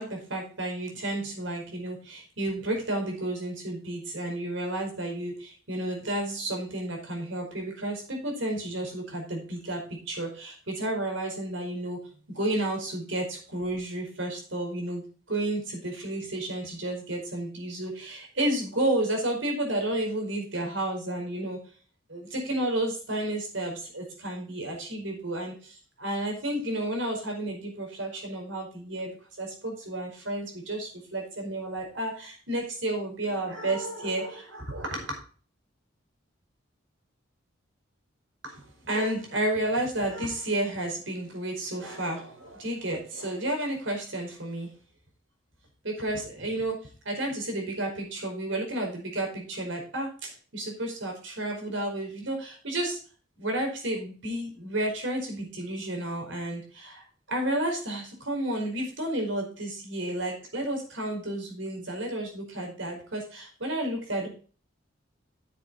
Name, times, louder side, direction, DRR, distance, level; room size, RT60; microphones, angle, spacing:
voice 1, 0.0-12.0 12.3-15.0 15.3-21.6 22.1-29.1 29.4-35.2 38.4-44.7 45.8-46.8 47.0-53.0 53.4-57.0 57.3-64.3, right 1 dB, 75° right, 2 dB, 5.0 m, -31 dB
10.0 x 7.8 x 4.4 m, 0.39 s
head